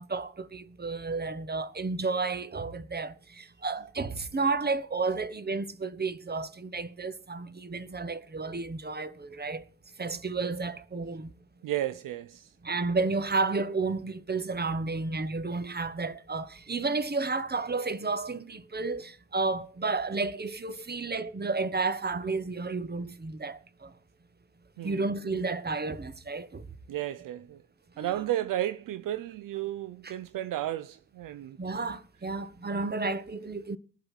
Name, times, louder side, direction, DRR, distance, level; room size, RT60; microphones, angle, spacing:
voice 1, 0.0-9.6 10.0-11.3 12.6-23.9 24.8-26.7 28.0-28.2 30.0-30.1 31.6-33.8, right 3 dB, 25° right, 1.2 m, -32 dB
voice 2, 11.6-12.5 24.8-25.0 26.9-27.6 28.0-31.6, right 13 dB, 65° right, 0.6 m, -33 dB
20.0 x 7.8 x 6.3 m
hypercardioid pair, 40°, 36 cm